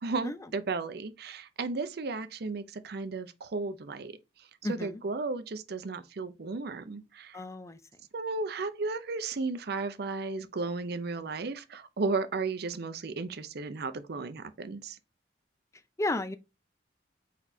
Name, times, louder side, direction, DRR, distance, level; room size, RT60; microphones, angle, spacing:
voice 1, 0.0-4.1 4.7-7.4 8.1-15.0, right 3 dB, 65° right, 0.6 m, -34 dB
voice 2, 4.6-5.0 7.3-7.8 16.0-16.4, left 2 dB, 15° left, 0.4 m, -32 dB
4.6 x 4.0 x 2.7 m
head